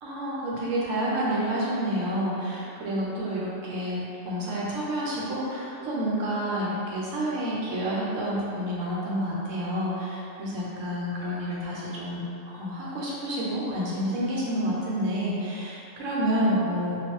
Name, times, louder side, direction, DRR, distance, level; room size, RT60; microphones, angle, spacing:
voice 1, 0.0-17.0, equal, 75° right, -6 dB, 1.1 m, -29 dB
3.8 x 2.3 x 3.0 m, 2.8 s
omnidirectional pair, 1.3 m